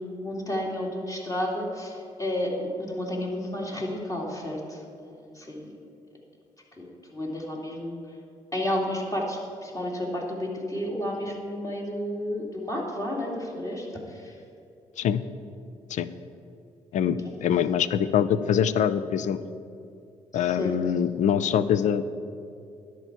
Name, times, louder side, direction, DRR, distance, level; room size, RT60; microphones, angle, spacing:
voice 1, 0.0-5.7 6.8-8.0 8.5-14.3 17.2-17.3 20.3-20.8, left 1 dB, 25° left, -2 dB, 2.6 m, -32 dB
voice 2, 16.9-19.4 20.3-22.1, left 8 dB, 65° left, 14 dB, 0.5 m, -24 dB
10.5 x 4.7 x 8.2 m, 2.5 s
supercardioid pair, 65°, 14 cm